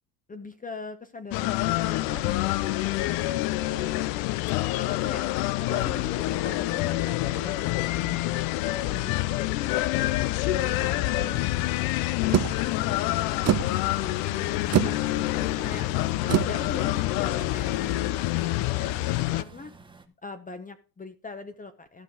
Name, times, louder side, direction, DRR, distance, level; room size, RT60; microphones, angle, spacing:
voice 1, 0.3-3.2 4.8-5.3 5.6-9.4 9.9-10.1 10.5-12.1 15.1-15.9 16.2-19.7 20.2-22.0, left 3 dB, 15° left, 10 dB, 0.8 m, -41 dB
sound 1, 1.3-19.4, left 17 dB, 80° left, 0.7 m, -27 dB
voice 2, 3.6-4.2 12.7-15.0, right 8 dB, 60° right, 8 dB, 2.5 m, -53 dB
sound 2, 12.3-17.9, right 11 dB, 35° right, 0.6 m, -29 dB
Truck, 13.8-20.1, right 3 dB, 10° right, 1.0 m, -49 dB
12.5 x 5.7 x 4.7 m, 0.35 s
supercardioid pair, 105°, 48 cm